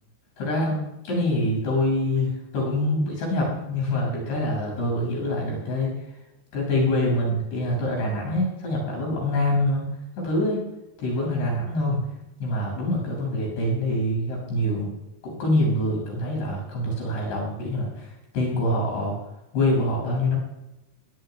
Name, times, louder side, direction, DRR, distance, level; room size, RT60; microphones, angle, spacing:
voice 1, 0.4-6.0 6.5-9.9 10.2-10.6 11.0-12.0 12.4-14.9 15.2-18.1 18.3-19.1 19.5-20.4, left 1 dB, 70° left, -1 dB, 9.2 m, -25 dB
22.5 x 19.0 x 2.4 m, 0.95 s
omnidirectional pair, 5.1 m